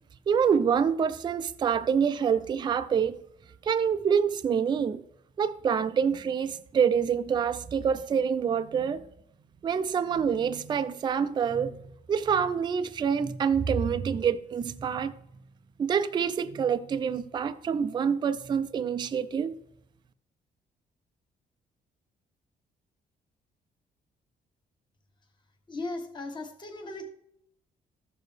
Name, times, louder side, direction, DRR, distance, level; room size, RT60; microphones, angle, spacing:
voice 1, 0.3-3.2 3.6-5.0 5.4-9.0 9.6-15.1 15.8-19.6, right 7 dB, 25° right, 0.4 m, -26 dB
voice 2, 25.7-27.1, left 2 dB, 25° left, 1.3 m, -37 dB
14.0 x 6.5 x 3.4 m
cardioid pair, 150°, 17 cm